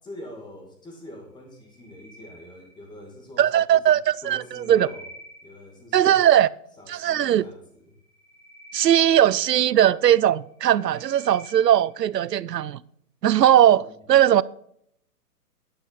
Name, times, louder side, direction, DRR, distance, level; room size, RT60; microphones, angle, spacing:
voice 1, 0.0-5.1 5.4-6.3 6.8-7.9 13.6-13.9, left 1 dB, 10° left, 2.1 m, -44 dB
sound 1, 1.5-3.2 4.1-6.0 7.9-10.0 10.5-12.1, equal, 10° right, 1.4 m, -49 dB
voice 2, 3.4-4.9 5.9-6.5 6.9-7.4 8.7-12.8 13.2-14.4, right 11 dB, 90° right, 0.6 m, -19 dB
10.5 x 9.5 x 4.1 m
hypercardioid pair, 140°, 47 cm